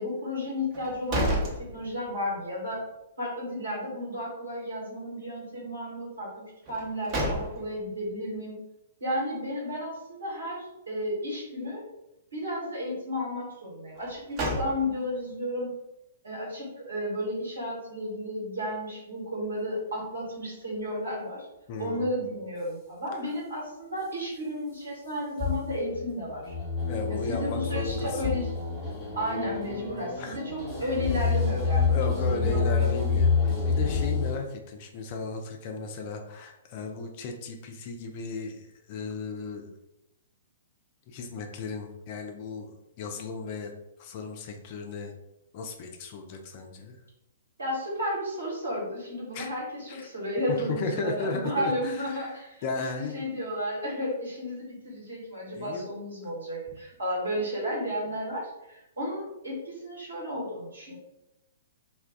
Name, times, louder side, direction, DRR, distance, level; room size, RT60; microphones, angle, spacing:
voice 1, 0.0-2.8 3.2-8.6 9.0-11.8 12.3-15.7 16.2-21.5 21.8-26.5 27.1-28.5 29.1-32.9 47.6-61.0, equal, 70° right, -4 dB, 1.4 m, -33 dB
sound 1, 0.7-2.4 2.7-2.8 6.6-7.9 13.9-15.2, right 1 dB, 30° right, 0.8 m, -31 dB
voice 2, 21.7-22.1 23.1-23.3 26.9-28.4 30.2-30.4 31.9-39.8 41.1-43.7 44.0-45.1 45.5-47.0 49.3-49.5 49.9-50.1 50.5-53.3 55.5-55.9, left 3 dB, 40° left, 4 dB, 0.4 m, -35 dB
sound 2, 25.4-34.4, left 5 dB, 20° left, 1.0 m, -28 dB
2.4 x 2.3 x 3.6 m, 0.88 s
figure-of-eight pair, 115°, 0 cm